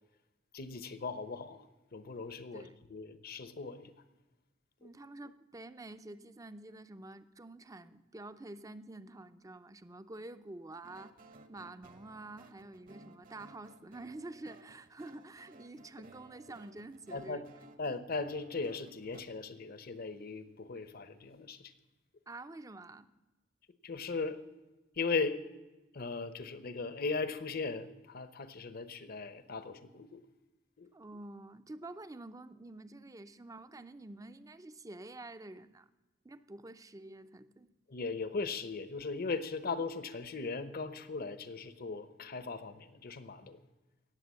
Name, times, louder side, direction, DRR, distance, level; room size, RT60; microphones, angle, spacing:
voice 1, 0.5-1.6 1.9-3.9 4.8-4.9 17.1-17.4 17.8-21.7 23.8-24.4 25.0-25.4 25.9-30.2 30.8-30.9 37.9-43.6, left 4 dB, 50° left, 12 dB, 0.9 m, -38 dB
voice 2, 4.8-11.1 11.5-17.4 22.3-23.1 30.9-35.9 36.2-37.7, right 2 dB, 20° right, 12 dB, 0.6 m, -48 dB
sound 1, 10.8-19.2, right 3 dB, 45° right, 1.1 m, -58 dB
18.5 x 7.8 x 7.6 m, 1.1 s
head